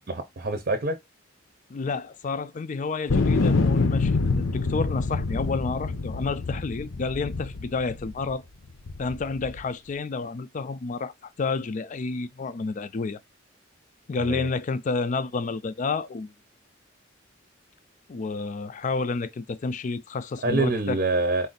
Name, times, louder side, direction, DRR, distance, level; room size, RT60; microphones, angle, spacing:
voice 1, 0.1-1.0 14.2-14.5 20.4-21.5, right 2 dB, 45° right, 0.7 m, -26 dB
voice 2, 1.7-8.4 9.0-13.2 14.1-16.3 18.1-21.0, left 4 dB, 40° left, 0.4 m, -30 dB
sound 1, 3.1-8.3 8.9-9.6, left 3 dB, 85° left, 0.7 m, -26 dB
4.3 x 2.6 x 3.9 m
head